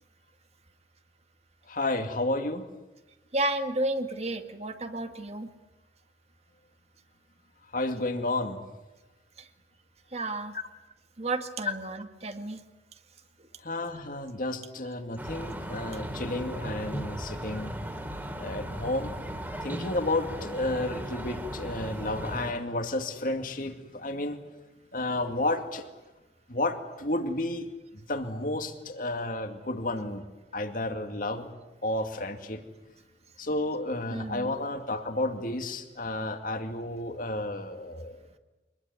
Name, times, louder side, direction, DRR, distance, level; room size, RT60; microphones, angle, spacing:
voice 1, 1.7-2.7 7.7-8.6 10.5-10.6 11.7-11.8 13.6-17.7 18.4-19.2 19.6-24.4 24.9-25.9 26.5-27.7 27.9-30.2 30.5-31.5 31.8-32.6 33.4-38.2, left 2 dB, 50° left, 7 dB, 2.3 m, -31 dB
voice 2, 3.3-5.5 9.4-9.5 10.1-10.5 11.2-12.6 34.1-34.5, right 2 dB, 35° right, 7 dB, 1.8 m, -32 dB
sound 1, 15.2-22.5, equal, 10° right, 2.7 m, -37 dB
25.0 x 20.5 x 9.7 m, 1.1 s
head